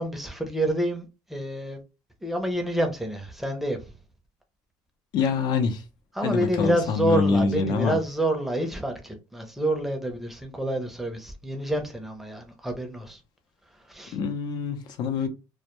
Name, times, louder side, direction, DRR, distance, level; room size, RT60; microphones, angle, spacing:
voice 1, 0.0-1.8 2.2-3.8 6.2-13.2 13.9-14.1, right 1 dB, ahead, 0.6 m, -28 dB
voice 2, 5.1-5.8 6.2-8.0 14.1-15.3, left 5 dB, 60° left, 0.6 m, -25 dB
2.2 x 2.1 x 2.9 m
supercardioid pair, 105°, 8 cm